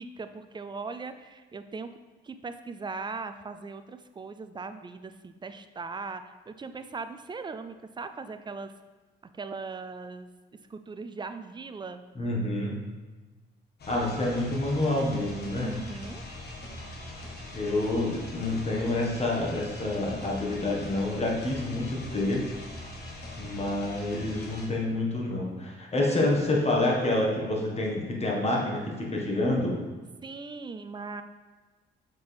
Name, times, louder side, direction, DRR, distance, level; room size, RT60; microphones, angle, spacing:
voice 1, 0.0-1.9 2.2-8.7 9.3-10.3 10.7-12.0 15.6-16.2 30.2-31.2, right 4 dB, 25° right, 9 dB, 0.4 m, -39 dB
voice 2, 12.1-12.8 13.9-15.7 17.5-22.4 23.4-29.8, left 2 dB, 30° left, -2 dB, 1.5 m, -28 dB
sound 1, 13.8-24.7, left 2 dB, 55° left, 1.4 m, -41 dB
6.6 x 4.4 x 3.4 m, 1.3 s
cardioid pair, 90°, 20 cm